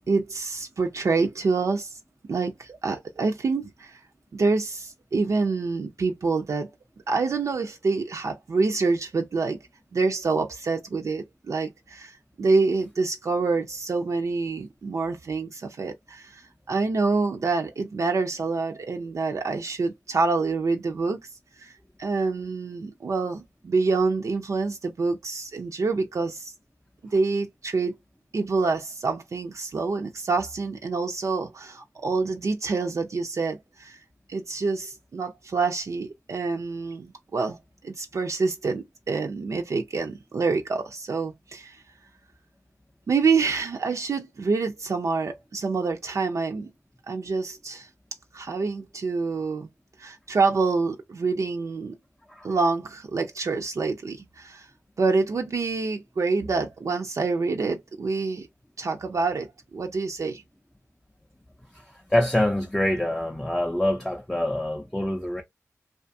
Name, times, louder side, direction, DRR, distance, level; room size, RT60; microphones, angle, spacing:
voice 1, 0.1-2.0 2.3-4.0 4.3-6.7 7.1-9.6 9.9-21.2 21.6-21.7 22.0-26.5 27.1-27.9 28.3-34.0 34.3-37.6 37.8-41.8 43.1-46.7 47.1-47.9 48.3-49.7 50.0-52.0 52.4-54.7 55.0-58.5 58.8-60.4, right 4 dB, 60° right, 0.4 m, -27 dB
voice 2, 61.7-65.4, left 1 dB, 10° left, 0.4 m, -25 dB
2.4 x 2.3 x 2.6 m
cardioid pair, 50°, 6 cm